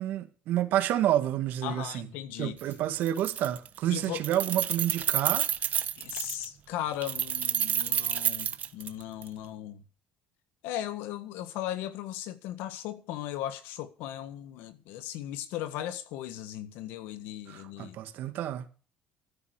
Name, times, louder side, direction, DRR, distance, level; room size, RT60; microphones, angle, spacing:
voice 1, 0.0-2.1 2.4-5.5 17.5-18.7, right 12 dB, 70° right, 2.1 m, -29 dB
voice 2, 1.6-2.6 3.9-4.2 6.0-9.8 10.6-18.0, left 12 dB, 80° left, 1.5 m, -37 dB
Keys jangling, 2.6-2.7 3.0-3.8 4.0-6.5 7.0-9.3, right 9 dB, 50° right, 1.1 m, -29 dB
13.5 x 9.7 x 6.6 m
supercardioid pair, 90°, 3 cm